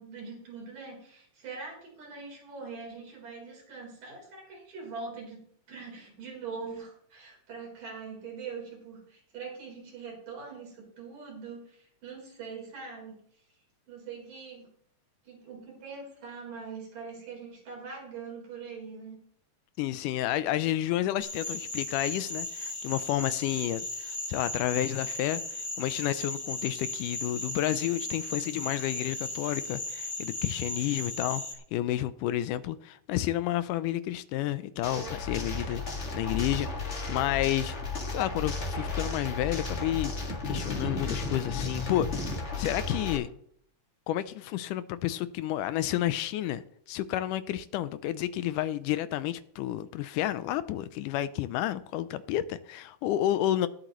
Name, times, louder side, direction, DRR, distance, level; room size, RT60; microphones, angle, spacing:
voice 1, 0.0-13.2 13.9-14.7 15.3-19.2, right 5 dB, 75° right, 5.6 m, -43 dB
voice 2, 19.8-31.4 31.7-37.8 38.1-40.1 40.5-42.1 42.6-43.3 44.1-46.6 46.9-53.7, left 13 dB, 80° left, 2.1 m, -30 dB
sound 1, 21.2-31.5, left 2 dB, 55° left, 0.5 m, -36 dB
sound 2, 34.8-43.2, left 3 dB, 30° left, 1.5 m, -33 dB
20.0 x 7.9 x 3.1 m
omnidirectional pair, 3.8 m